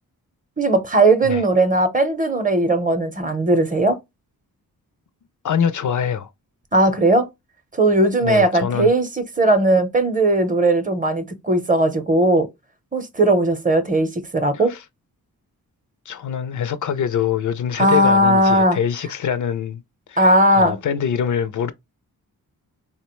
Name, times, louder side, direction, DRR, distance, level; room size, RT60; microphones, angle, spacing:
voice 1, 0.6-4.0 6.7-7.3 7.7-9.1 9.4-12.5 12.9-14.7 17.8-18.8 20.2-20.8, right 1 dB, 25° right, 0.7 m, -17 dB
voice 2, 5.4-6.3 8.2-8.9 14.5-14.8 16.1-19.8 20.1-21.7, left 8 dB, 55° left, 0.4 m, -24 dB
3.7 x 2.1 x 2.9 m
cardioid pair, 80°, 35 cm